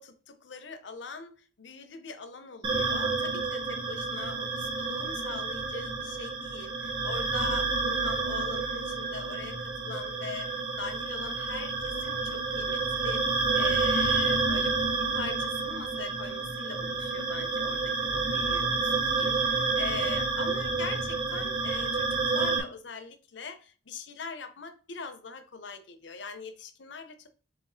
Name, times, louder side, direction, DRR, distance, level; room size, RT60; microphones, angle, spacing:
voice 1, 0.0-27.3, left 4 dB, 70° left, 0.6 m, -42 dB
sound 1, 2.6-22.6, right 3 dB, 25° right, 0.6 m, -29 dB
4.7 x 4.1 x 2.6 m
head